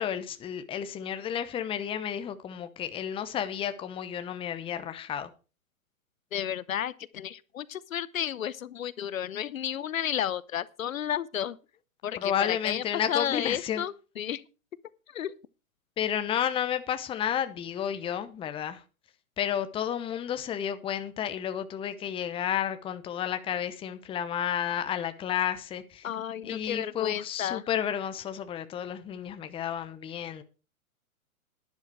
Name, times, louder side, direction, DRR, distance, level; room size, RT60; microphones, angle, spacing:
voice 1, 0.0-5.3 12.2-13.9 16.0-18.8 19.4-26.1 26.4-30.4, left 9 dB, 10° left, 0.8 m, -31 dB
voice 2, 6.3-11.6 12.0-14.4 15.1-15.3 26.0-27.6, left 10 dB, 70° left, 0.9 m, -32 dB
11.5 x 10.5 x 4.7 m
hypercardioid pair, 115°, 43 cm